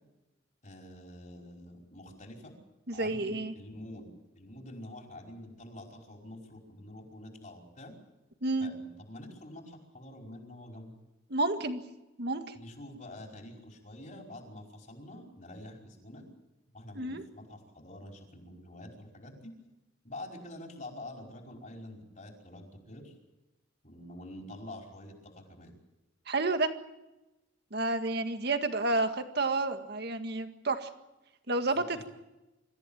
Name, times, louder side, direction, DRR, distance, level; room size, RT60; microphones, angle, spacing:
voice 1, 0.6-2.5 2.9-7.9 8.6-10.9 12.5-16.2 16.7-19.5 20.0-23.1 23.8-25.8 31.7-31.8, left 1 dB, 40° left, 2 dB, 5.2 m, -47 dB
voice 2, 2.9-3.5 8.4-8.7 11.3-11.8 12.2-12.5 17.0-17.2 26.3-26.7 27.7-30.9 31.5-32.1, right 2 dB, 55° right, 7 dB, 1.9 m, -30 dB
26.0 x 15.0 x 8.9 m, 0.99 s
head